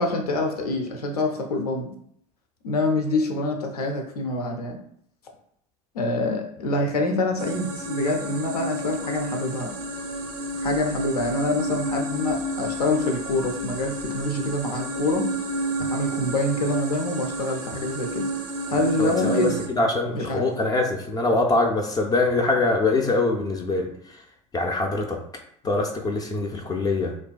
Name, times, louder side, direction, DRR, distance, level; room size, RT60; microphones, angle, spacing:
voice 1, 0.0-1.9 2.6-4.8 5.9-9.7 10.6-15.3 15.8-18.3 18.7-19.6 20.1-20.5, left 2 dB, 85° left, 3 dB, 0.5 m, -26 dB
sound 1, 7.4-19.7, right 1 dB, 85° right, 0.4 m, -30 dB
voice 2, 19.0-23.9 24.5-25.2 25.6-27.1, left 2 dB, 20° left, 1 dB, 0.3 m, -23 dB
2.6 x 2.2 x 2.2 m, 0.68 s
hypercardioid pair, 80°, 19 cm